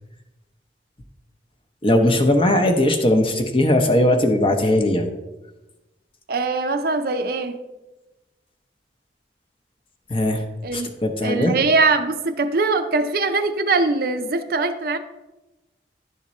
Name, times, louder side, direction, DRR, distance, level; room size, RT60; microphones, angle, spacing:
voice 1, 1.8-5.1 10.1-10.4 10.7-11.5, left 1 dB, 30° left, 0.7 m, -19 dB
voice 2, 6.3-7.6 10.6-10.9 11.2-15.0, right 3 dB, 55° right, 0.5 m, -22 dB
10.5 x 3.6 x 4.2 m
head